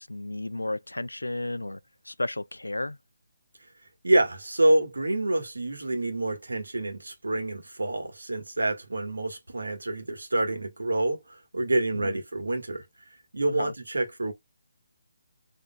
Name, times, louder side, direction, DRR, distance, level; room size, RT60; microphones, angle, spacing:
voice 1, 0.0-1.8 2.0-3.0 11.9-12.2 13.5-13.7, left 2 dB, 85° left, 0.3 m, -33 dB
voice 2, 4.0-12.8 13.3-14.3, right 1 dB, 80° right, 1.7 m, -27 dB
5.2 x 3.2 x 2.4 m
figure-of-eight pair, 145°, 0 cm